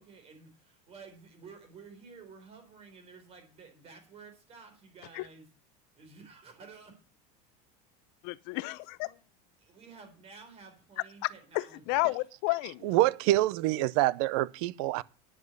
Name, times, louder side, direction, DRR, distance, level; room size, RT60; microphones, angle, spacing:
voice 1, 0.0-5.5 5.9-7.0 9.6-12.2 12.9-13.1, right 5 dB, 30° right, 4.4 m, -52 dB
voice 2, 8.2-9.1 11.2-12.9, left 23 dB, 55° left, 0.7 m, -32 dB
voice 3, 12.8-15.0, right 16 dB, 60° right, 0.7 m, -26 dB
10.5 x 7.4 x 7.8 m
supercardioid pair, 160°, 20 cm